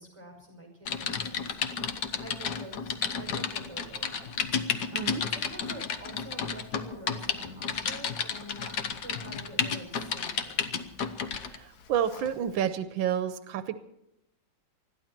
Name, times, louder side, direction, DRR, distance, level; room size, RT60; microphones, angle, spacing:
voice 1, 0.0-1.6 2.2-4.3 4.9-10.7, right 1 dB, 15° right, 3 dB, 5.4 m, -47 dB
Typing, 0.9-11.6 12.1-12.3, left 6 dB, 60° left, 1.4 m, -32 dB
voice 2, 11.5-13.8, right 9 dB, 85° right, 11 dB, 1.6 m, -30 dB
21.0 x 14.0 x 4.5 m, 0.84 s
omnidirectional pair, 2.1 m